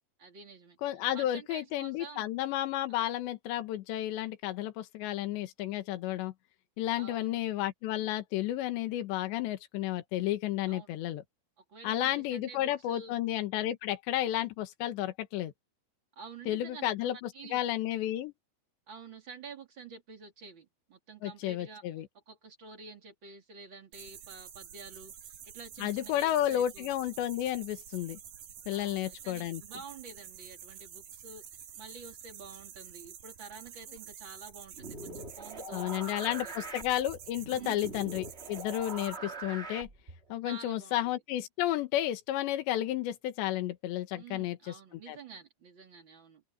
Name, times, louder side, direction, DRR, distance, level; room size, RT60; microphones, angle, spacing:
voice 1, 0.2-0.8 1.1-2.3 2.9-3.0 6.9-7.5 10.7-10.9 11.6-13.2 16.2-17.6 18.9-21.8 22.3-26.9 28.7-36.7 37.5-37.9 40.4-41.0 44.1-46.4, right 4 dB, 35° right, 2.5 m, -49 dB
voice 2, 0.8-6.3 6.8-11.2 11.8-15.5 16.5-18.3 21.2-22.1 25.8-28.2 28.7-29.6 35.7-39.9 40.3-45.2, left 13 dB, 85° left, 3.7 m, -32 dB
sound 1, 23.9-39.2, right 9 dB, 60° right, 4.0 m, -49 dB
sound 2, 34.7-40.3, right 2 dB, 80° right, 0.5 m, -43 dB
open air
omnidirectional pair, 5.0 m